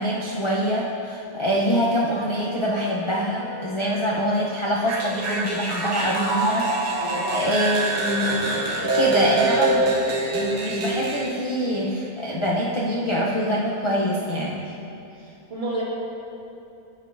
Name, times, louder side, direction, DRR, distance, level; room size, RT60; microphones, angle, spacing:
voice 1, 0.0-7.1 7.3-9.9 10.3-14.6, equal, 45° left, -5 dB, 0.3 m, -25 dB
Wind instrument woodwind instrument, 1.8-7.7, equal, 65° right, 2.2 m, -42 dB
sound 1, 4.9-11.3, right 2 dB, 85° right, 1.4 m, -25 dB
voice 2, 7.0-7.4 15.5-15.8, right 1 dB, 40° right, -7 dB, 1.9 m, -30 dB
13.5 x 5.3 x 2.5 m, 2.8 s
omnidirectional pair, 1.6 m